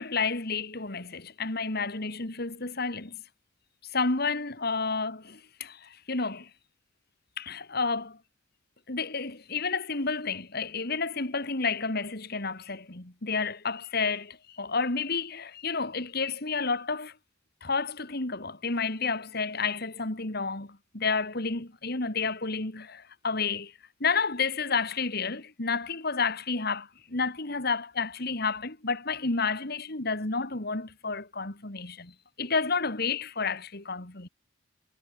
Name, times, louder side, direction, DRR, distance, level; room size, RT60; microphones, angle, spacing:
voice 1, 0.0-3.2 3.9-6.5 7.4-8.2 8.9-17.1 17.6-23.7 24.0-34.3, left 4 dB, 55° left, 2.7 m, -30 dB
head